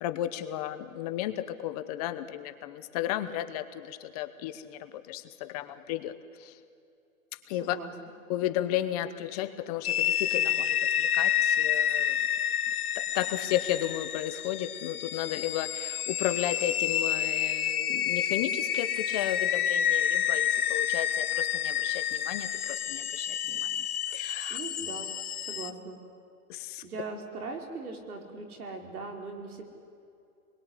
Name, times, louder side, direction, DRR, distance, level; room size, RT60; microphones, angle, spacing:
voice 1, 0.0-6.1 6.4-6.6 7.5-7.8 8.3-12.2 12.9-23.7 24.1-24.6 26.5-26.8, left 12 dB, 25° left, 10 dB, 0.9 m, -34 dB
voice 2, 7.5-7.9 24.5-25.1 25.4-26.0 26.8-29.7, right 3 dB, 80° right, 3 dB, 5.4 m, -40 dB
sound 1, 9.8-25.7, left 10 dB, 80° left, 1.3 m, -29 dB
27.5 x 22.0 x 9.9 m, 2.6 s
hypercardioid pair, 155°, 44 cm